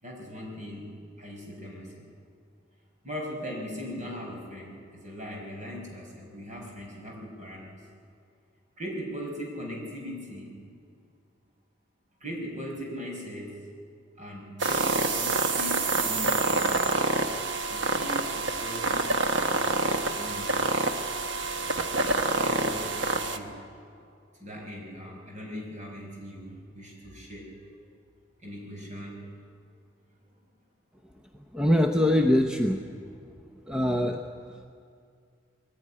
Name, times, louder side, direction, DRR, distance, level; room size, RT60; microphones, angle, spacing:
voice 1, 0.0-2.1 3.0-7.8 8.8-10.5 12.2-13.6 14.2-17.1 17.7-20.6 22.4-23.6 24.4-27.5 28.4-29.5, equal, 40° right, -1 dB, 5.0 m, -40 dB
sound 1, 14.6-23.4, right 3 dB, 70° right, 1.2 m, -27 dB
voice 2, 31.5-32.8 33.7-34.2, left 1 dB, 5° right, 3 dB, 0.7 m, -23 dB
21.5 x 15.0 x 9.9 m, 2.4 s
head